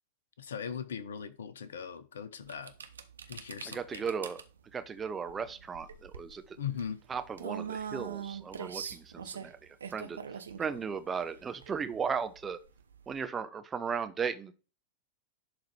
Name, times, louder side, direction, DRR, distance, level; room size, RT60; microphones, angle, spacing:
voice 1, 0.4-2.7 3.3-4.0 6.6-7.0, left 7 dB, 65° left, 0.9 m, -39 dB
sound 1, 2.5-13.2, right 7 dB, 70° right, 0.7 m, -43 dB
voice 2, 3.6-4.4 4.7-6.6 7.1-12.6 13.1-14.5, right 6 dB, 20° right, 0.9 m, -36 dB
11.0 x 3.9 x 3.4 m
figure-of-eight pair, 90°, 0 cm